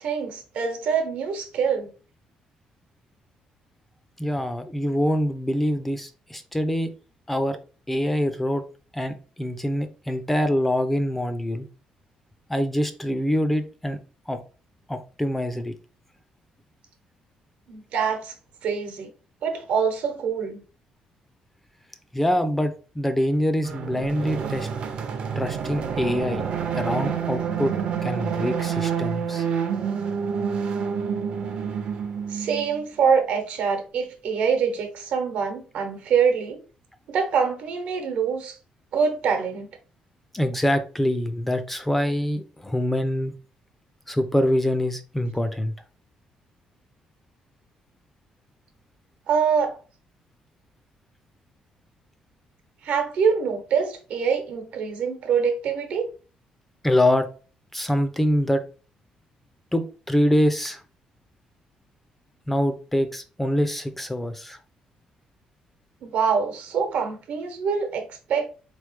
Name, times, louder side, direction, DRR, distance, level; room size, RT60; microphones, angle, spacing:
voice 1, 0.0-1.9 17.7-18.3 18.6-19.1 19.4-20.6 32.3-36.6 37.1-38.5 38.9-39.7 49.3-49.8 52.8-56.1 66.0-68.0 68.3-68.5, right 6 dB, 75° right, 1.0 m, -24 dB
voice 2, 4.2-6.9 7.3-7.6 7.9-8.6 8.9-11.7 12.5-14.0 14.3-14.4 14.9-15.7 22.1-24.7 25.4-26.4 26.7-27.7 28.0-29.5 40.3-43.3 44.1-45.7 56.8-57.3 57.7-58.6 59.7-60.8 62.5-64.6, equal, 5° left, 0.3 m, -24 dB
sound 1, 23.6-32.8, right 7 dB, 50° right, 0.6 m, -28 dB
3.9 x 3.1 x 3.3 m
cardioid pair, 165°, 2 cm